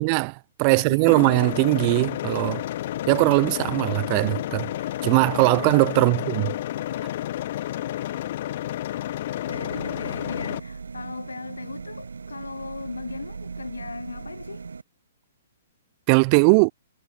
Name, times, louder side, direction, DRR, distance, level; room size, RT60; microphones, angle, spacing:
voice 1, 0.0-2.6 3.1-4.7 5.0-6.5 16.1-16.7, right 38 dB, 35° right, 0.4 m, -20 dB
voice 2, 0.6-1.1 5.9-6.2 9.5-14.7, left 4 dB, 75° left, 0.9 m, -38 dB
sound 1, 1.1-10.6, left 13 dB, 50° left, 1.2 m, -30 dB
sound 2, 9.5-14.8, right 5 dB, 75° right, 3.0 m, -38 dB
figure-of-eight pair, 120°, 0 cm